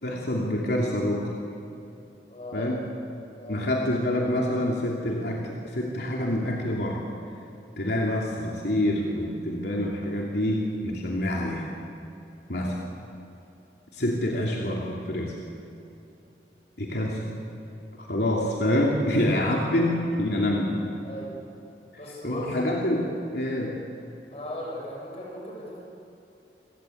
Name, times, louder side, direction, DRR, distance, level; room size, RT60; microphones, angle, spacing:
voice 1, 0.0-1.4 2.5-2.8 3.5-7.0 7.8-11.7 12.5-12.7 13.9-15.4 16.8-17.3 18.0-20.9 22.2-23.8, left 1 dB, 70° left, -2 dB, 2.8 m, -26 dB
voice 2, 2.3-2.7 3.4-3.6 12.5-12.9 21.0-21.3 22.0-22.6 24.3-25.8, left 1 dB, 35° left, -3 dB, 7.4 m, -38 dB
28.5 x 17.0 x 8.4 m, 2.7 s
head